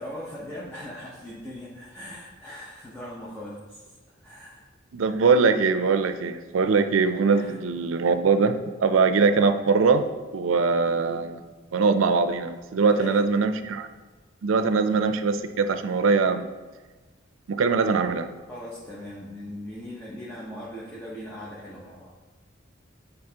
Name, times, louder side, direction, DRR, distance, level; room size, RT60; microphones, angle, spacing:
voice 1, 0.0-3.9 4.2-4.7 7.3-7.6 12.7-13.3 18.5-22.1, left 1 dB, 10° left, -7 dB, 0.9 m, -39 dB
voice 2, 4.9-11.4 11.7-13.9 14.4-16.5 17.5-18.3, right 4 dB, 85° right, 9 dB, 0.4 m, -22 dB
8.8 x 3.9 x 2.8 m, 1.3 s
head